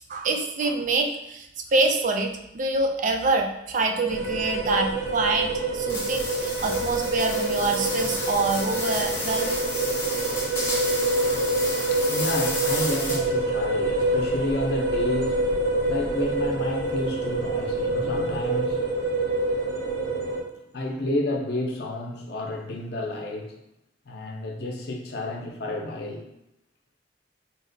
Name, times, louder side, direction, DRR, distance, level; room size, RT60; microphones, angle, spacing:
voice 1, 0.1-9.6, right 3 dB, 45° right, 4 dB, 0.3 m, -26 dB
sound 1, 4.1-20.4, right 2 dB, 85° right, 0.7 m, -26 dB
sound 2, 5.9-13.4, left 2 dB, 15° left, 0.6 m, -32 dB
voice 2, 11.3-19.0 20.7-23.6 24.1-26.2, left 1 dB, 60° left, 1 dB, 0.5 m, -31 dB
4.0 x 2.1 x 2.6 m, 0.85 s
head